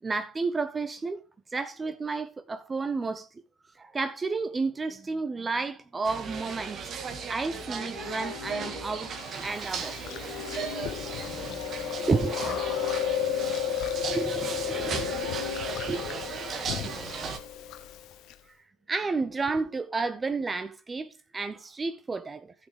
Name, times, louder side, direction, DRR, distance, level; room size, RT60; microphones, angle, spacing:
voice 1, 0.0-1.2 1.5-3.3 3.8-6.8 7.3-10.0 12.0-12.4 14.1-15.1 15.9-16.0 18.5-18.6 18.9-22.5, right 4 dB, 25° right, 0.7 m, -31 dB
sound 1, 6.0-17.4, right 5 dB, 45° right, 1.6 m, -36 dB
sound 2, 7.5-17.7, left 13 dB, 80° left, 0.6 m, -44 dB
Chewing mastication, 9.4-18.3, left 9 dB, 60° left, 0.9 m, -33 dB
voice 2, 11.2-14.4 14.6-17.7, right 2 dB, 85° right, 3.0 m, -52 dB
14.5 x 6.6 x 3.2 m
hypercardioid pair, 65°, 0 cm